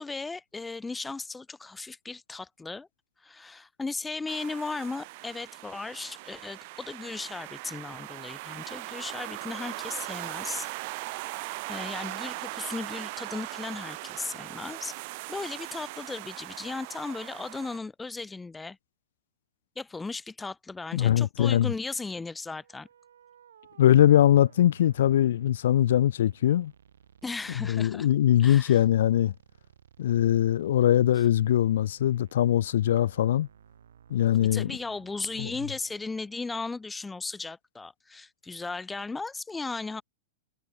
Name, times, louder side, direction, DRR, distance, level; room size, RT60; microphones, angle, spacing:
voice 1, 0.0-2.9 3.2-11.3 11.7-18.8 19.8-22.9 27.2-28.1 28.4-28.8 31.2-31.3 34.3-40.0, left 3 dB, 10° left, 0.7 m, -36 dB
sound 1, 4.3-17.8, right 25 dB, 55° right, 0.4 m, -39 dB
voice 2, 20.9-21.7 23.8-26.7 27.7-29.3 30.0-33.5 34.1-34.7 35.4-35.5, left 11 dB, 75° left, 0.3 m, -22 dB
sound 2, 22.4-36.3, right 9 dB, 85° right, 4.8 m, -58 dB
hypercardioid pair, 120°, 0 cm